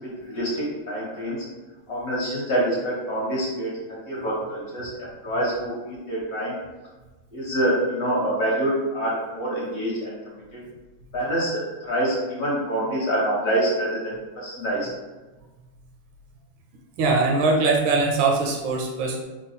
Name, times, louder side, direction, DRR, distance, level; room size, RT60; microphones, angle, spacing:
voice 1, 0.0-1.4 1.9-4.9 5.2-6.5 7.3-10.2 11.1-14.9, right 1 dB, 55° left, -6 dB, 1.3 m, -26 dB
voice 2, 17.0-19.2, right 3 dB, 80° right, 0 dB, 1.3 m, -21 dB
3.4 x 2.2 x 4.2 m, 1.2 s
omnidirectional pair, 2.3 m